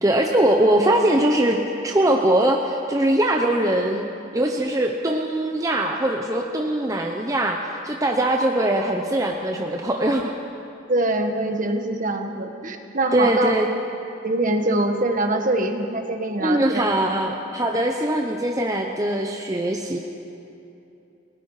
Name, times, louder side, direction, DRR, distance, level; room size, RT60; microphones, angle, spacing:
voice 1, 0.0-4.0 4.3-7.6 7.8-10.3 13.1-13.7 16.4-20.0, right 1 dB, 15° right, 2 dB, 0.9 m, -21 dB
voice 2, 10.9-13.5 14.2-16.8, right 2 dB, 40° right, 5 dB, 1.6 m, -23 dB
29.5 x 18.5 x 5.0 m, 2.8 s
head